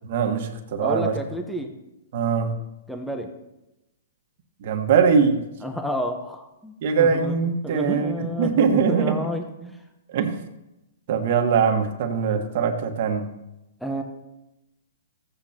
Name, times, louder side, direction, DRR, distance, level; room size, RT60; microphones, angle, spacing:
voice 1, 0.0-1.2 2.1-2.5 4.6-5.4 6.8-9.2 10.1-10.3 11.1-13.2, right 6 dB, 55° right, 5 dB, 1.5 m, -22 dB
voice 2, 0.8-1.7 2.9-3.3 5.6-7.4 7.6-9.7 13.8-14.0, equal, ahead, 3 dB, 1.0 m, -30 dB
15.5 x 8.5 x 2.9 m, 0.92 s
hypercardioid pair, 140°, 0 cm